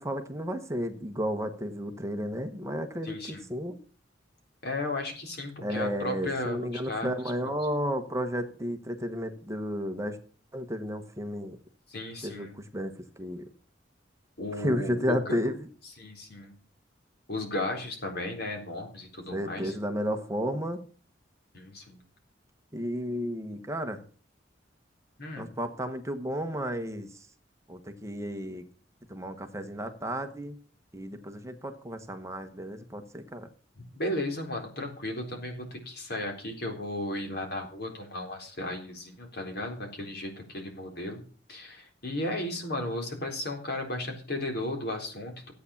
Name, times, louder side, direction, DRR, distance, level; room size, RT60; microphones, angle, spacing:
voice 1, 0.0-3.8 5.6-10.2 10.5-11.6 12.2-12.9 13.2-13.4 14.5-15.5 19.3-20.8 22.7-24.0 25.4-27.1 27.7-28.7 29.1-30.5 30.9-33.5, equal, 15° right, 7 dB, 1.1 m, -32 dB
voice 2, 3.0-3.4 4.6-7.1 11.9-12.6 14.4-15.4 16.0-16.5 17.3-19.8 21.5-22.0 25.2-25.5 33.9-41.2 41.5-45.5, left 1 dB, 60° left, 3 dB, 3.9 m, -35 dB
14.5 x 8.4 x 7.1 m, 0.42 s
head